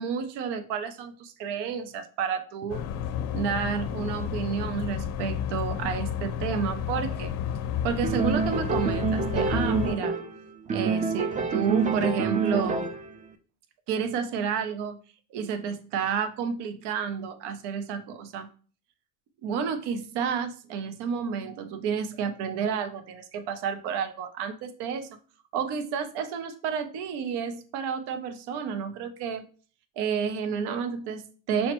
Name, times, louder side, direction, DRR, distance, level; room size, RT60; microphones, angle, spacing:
voice 1, 0.0-2.9 3.3-7.4 7.8-10.2 10.7-12.9 13.9-15.0 15.3-18.5 19.4-25.2 25.5-29.5 30.0-31.7, right 6 dB, 60° right, 10 dB, 0.7 m, -30 dB
sound 1, 2.7-10.0, left 9 dB, 75° left, 0.6 m, -31 dB
sound 2, 8.0-10.4 10.7-13.1, right 5 dB, 20° right, 0.4 m, -27 dB
5.5 x 2.1 x 2.9 m, 0.40 s
supercardioid pair, 80°, 46 cm